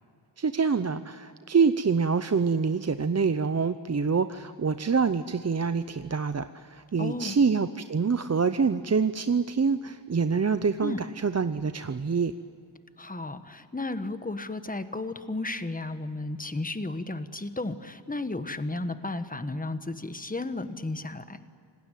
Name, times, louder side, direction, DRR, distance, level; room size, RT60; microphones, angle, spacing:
voice 1, 0.4-12.3, right 5 dB, 35° right, 11 dB, 0.7 m, -26 dB
voice 2, 7.0-7.4 10.8-11.0 13.0-21.4, left 2 dB, 20° left, 10 dB, 1.3 m, -33 dB
27.0 x 19.0 x 9.2 m, 2.4 s
wide cardioid pair, 95°, 45 cm